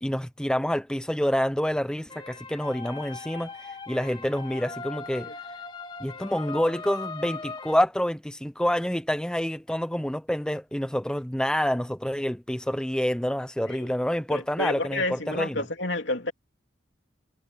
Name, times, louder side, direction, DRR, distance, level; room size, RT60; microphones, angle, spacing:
voice 1, 0.0-5.3 6.0-15.6, equal, 5° left, 0.6 m, -27 dB
sound 1, 2.1-7.7, left 4 dB, 25° left, 2.3 m, -39 dB
voice 2, 14.3-16.3, left 2 dB, 70° left, 3.1 m, -30 dB
head